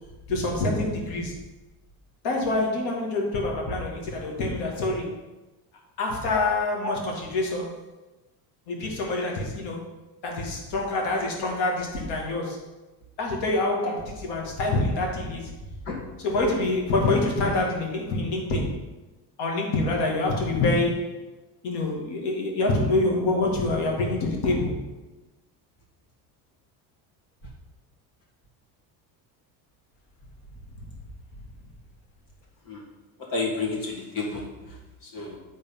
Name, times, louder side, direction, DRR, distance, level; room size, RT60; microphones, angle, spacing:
voice 1, 0.3-1.3 2.2-5.1 6.0-7.8 8.7-9.8 10.2-12.6 13.2-15.5 16.2-18.8 19.4-21.2 21.6-24.7, left 2 dB, 75° left, 0 dB, 2.1 m, -26 dB
voice 2, 33.2-35.4, left 3 dB, 50° left, -1 dB, 2.2 m, -31 dB
8.3 x 4.0 x 5.4 m, 1.1 s
cardioid pair, 150°, 41 cm